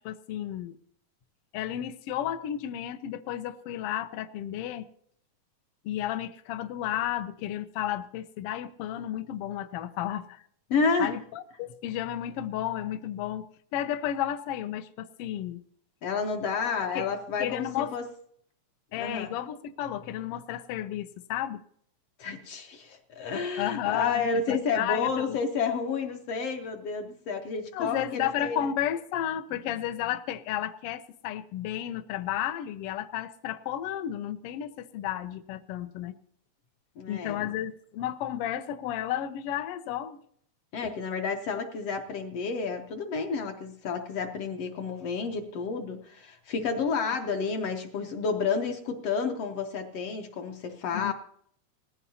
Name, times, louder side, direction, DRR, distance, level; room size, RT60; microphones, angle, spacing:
voice 1, 0.0-0.8 1.5-4.9 5.8-10.4 11.0-13.4 13.7-15.6 16.9-17.1 17.4-18.0 18.9-21.6 23.6-25.4 27.7-36.1 37.1-40.2 50.9-51.1, left 11 dB, 85° left, 10 dB, 1.3 m, -32 dB
voice 2, 10.7-11.1 16.0-17.7 17.9-18.0 18.9-19.3 22.2-28.7 37.0-37.5 40.7-51.1, left 5 dB, 65° left, 4 dB, 1.6 m, -30 dB
19.0 x 15.0 x 2.8 m, 0.66 s
omnidirectional pair, 3.3 m